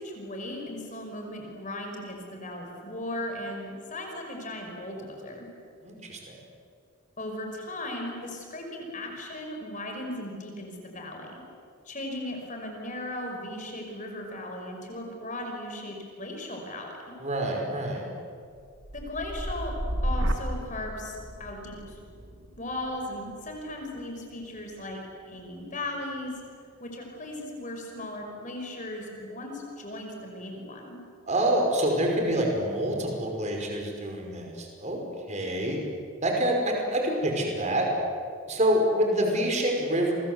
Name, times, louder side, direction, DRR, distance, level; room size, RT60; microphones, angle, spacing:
voice 1, 0.0-5.5 7.2-11.4 11.9-16.9 18.9-19.7 20.0-22.0 22.6-25.0 25.3-26.3 26.8-31.0, left 1 dB, 35° left, 2 dB, 5.4 m, -37 dB
voice 2, 5.8-6.3 17.2-18.0 31.3-35.0 35.3-35.8 36.2-37.9 38.5-40.1, right 1 dB, 35° right, 1 dB, 5.4 m, -26 dB
sound 1, 18.5-26.6 27.0-27.5, right 1 dB, 70° right, 2.6 m, -35 dB
30.0 x 24.0 x 8.2 m, 2.3 s
head